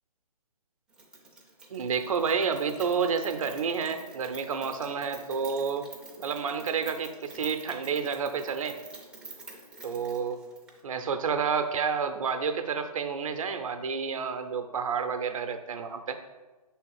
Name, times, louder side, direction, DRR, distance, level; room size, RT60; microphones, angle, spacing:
Rain, 0.9-10.8, right 3 dB, 5° right, 0.4 m, -48 dB
voice 1, 1.7-5.8 6.2-8.8 9.8-10.4 10.8-16.2, right 6 dB, 60° right, 8 dB, 0.6 m, -30 dB
6.1 x 3.5 x 4.7 m, 1.2 s
hypercardioid pair, 145°, 20 cm